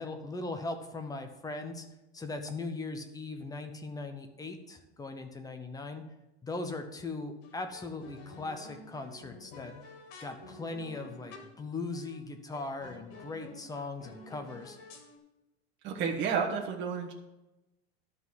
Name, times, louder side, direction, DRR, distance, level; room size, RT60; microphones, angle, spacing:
voice 1, 0.0-1.9 2.1-6.0 6.4-9.7 10.2-14.8, left 3 dB, 10° left, 6 dB, 0.8 m, -39 dB
sound 1, 6.6-7.0 7.4-11.6 11.9-12.2 12.5-15.2, left 3 dB, 65° left, 2.0 m, -50 dB
voice 2, 15.8-17.1, right 6 dB, 35° right, 0 dB, 1.3 m, -31 dB
12.0 x 4.1 x 7.3 m, 0.99 s
supercardioid pair, 150°, 33 cm